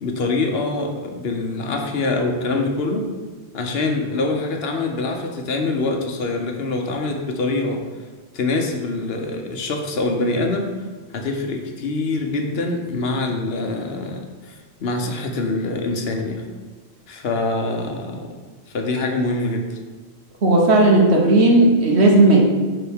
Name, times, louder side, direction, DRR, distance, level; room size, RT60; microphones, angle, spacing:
voice 1, 0.0-3.0 3.5-7.8 8.3-10.7 11.1-16.4 17.1-18.3 18.7-19.8, left 2 dB, 70° left, 3 dB, 1.0 m, -24 dB
voice 2, 20.4-22.4, right 2 dB, 80° right, -1 dB, 1.4 m, -14 dB
9.1 x 3.8 x 3.5 m, 1.4 s
omnidirectional pair, 1.1 m